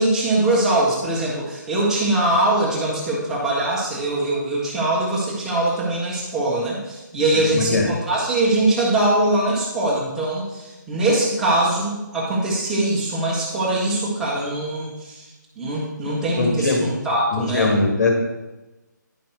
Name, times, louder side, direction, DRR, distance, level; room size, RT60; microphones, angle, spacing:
voice 1, 0.0-15.2 15.6-17.7, right 1 dB, 5° right, -7 dB, 1.4 m, -22 dB
voice 2, 7.5-7.9 16.4-16.8 17.3-18.1, left 3 dB, 60° left, 2 dB, 1.6 m, -20 dB
10.5 x 5.3 x 4.6 m, 1.1 s
figure-of-eight pair, 165°, 10 cm